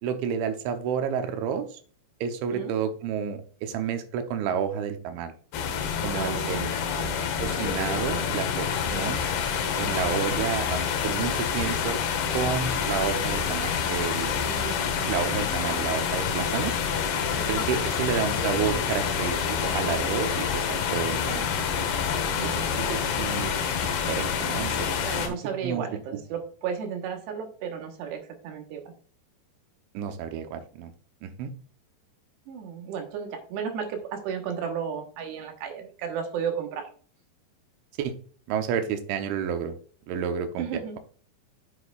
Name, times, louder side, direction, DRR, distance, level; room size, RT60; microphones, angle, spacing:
voice 1, 0.0-1.8 2.2-5.3 6.0-6.7 7.4-9.2 9.8-12.0 12.3-14.3 15.0-16.7 17.5-21.5 22.4-23.5 23.8-25.4 25.6-25.9 29.9-30.9 31.2-31.5 38.0-38.1 38.5-39.8 40.1-40.7, right 7 dB, 90° right, 8 dB, 3.4 m, -30 dB
sound 1, 5.5-25.3, left 7 dB, 70° left, 3.0 m, -27 dB
voice 2, 6.1-7.4 8.9-9.2 10.1-10.2 14.4-15.3 15.6-15.7 17.4-17.7 22.3-22.9 25.0-28.9 32.5-36.9 40.6-41.0, right 7 dB, 75° right, 4 dB, 3.3 m, -34 dB
8.2 x 7.7 x 2.4 m, 0.43 s
omnidirectional pair, 5.2 m